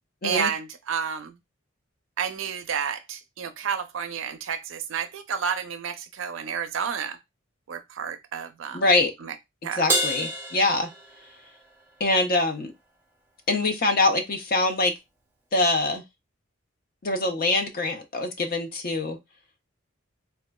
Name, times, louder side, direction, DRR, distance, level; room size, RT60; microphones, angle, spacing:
voice 1, 0.2-1.4 2.2-7.2 7.7-8.9 9.2-9.3 9.6-9.9, right 7 dB, 65° right, 0.4 m, -30 dB
voice 2, 8.7-9.1 9.8-10.9 12.0-12.7 13.5-14.9 15.5-16.0 17.0-19.2, left 2 dB, 45° left, 0.5 m, -24 dB
Crash cymbal, 9.9-11.6, right 1 dB, 10° right, 0.5 m, -28 dB
3.6 x 2.3 x 2.2 m
head